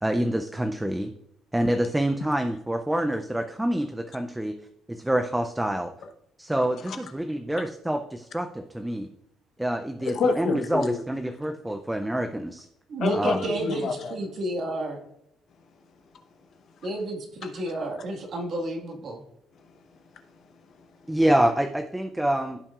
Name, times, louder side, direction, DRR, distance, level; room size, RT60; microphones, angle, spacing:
voice 1, 0.0-1.1 1.5-4.5 4.9-5.9 6.4-9.1 9.6-12.7 13.2-13.5 21.1-22.6, right 1 dB, 5° right, 6 dB, 0.4 m, -26 dB
voice 2, 10.0-11.0 13.0-14.2 15.9-16.1 16.4-16.9 17.7-17.8 19.5-21.2, left 4 dB, 45° left, 6 dB, 0.9 m, -30 dB
voice 3, 12.9-15.0 16.8-19.2, right 1 dB, 40° right, 3 dB, 1.6 m, -31 dB
15.0 x 5.8 x 2.4 m, 0.77 s
cardioid pair, 165°, 0 cm